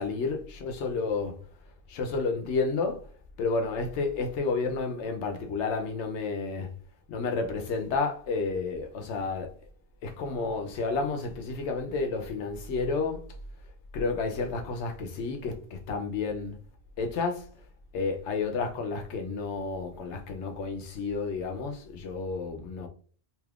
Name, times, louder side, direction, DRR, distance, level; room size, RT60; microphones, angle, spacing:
voice 1, 0.0-1.4 1.9-3.1 3.4-6.7 7.1-9.6 10.0-13.3 13.9-16.6 17.0-17.5 17.9-22.9, left 4 dB, 85° left, 0.9 m, -31 dB
3.4 x 2.8 x 2.3 m
omnidirectional pair, 1.1 m